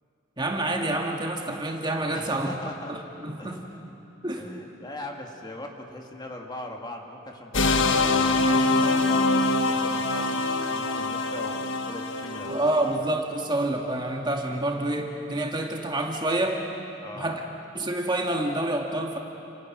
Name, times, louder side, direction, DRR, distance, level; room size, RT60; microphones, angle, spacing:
voice 1, 0.4-2.5 2.9-3.0 3.2-3.6 4.2-4.4 12.4-16.6 17.1-17.4 17.7-19.2, right 1 dB, 20° right, 1 dB, 2.1 m, -27 dB
voice 2, 2.1-2.9 3.4-4.0 4.4-12.6 13.0-13.1 14.7-14.8 17.0-17.4, left 1 dB, 20° left, 1 dB, 2.2 m, -41 dB
sound 1, 7.5-12.9, left 2 dB, 65° left, 1.4 m, -24 dB
29.5 x 29.0 x 6.2 m, 2.8 s
head